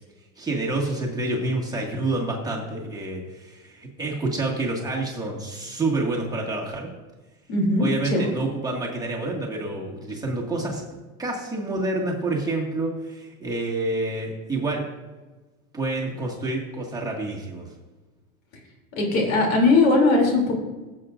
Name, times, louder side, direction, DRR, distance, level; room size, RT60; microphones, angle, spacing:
voice 1, 0.4-6.9 7.8-10.8 11.2-14.8 15.7-17.7, right 2 dB, 10° right, -3 dB, 1.9 m, -28 dB
voice 2, 7.5-8.3 19.0-20.5, left 2 dB, 70° left, 0 dB, 3.1 m, -19 dB
15.5 x 7.7 x 2.6 m, 1.2 s
hypercardioid pair, 110°, 42 cm